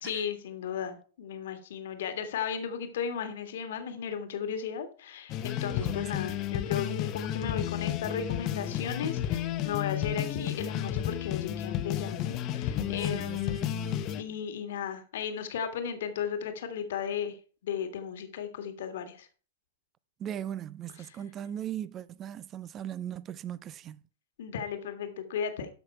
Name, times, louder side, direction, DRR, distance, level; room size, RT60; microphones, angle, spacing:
voice 1, 0.0-13.9 14.2-17.4 17.6-19.3 24.4-25.7, left 7 dB, 55° left, 1.6 m, -35 dB
sound 1, 5.3-14.2, left 11 dB, 35° left, 0.9 m, -32 dB
voice 2, 5.8-6.3 12.8-14.4 20.2-24.0, right 10 dB, 25° right, 0.5 m, -39 dB
12.5 x 5.8 x 4.4 m
figure-of-eight pair, 105°, 0 cm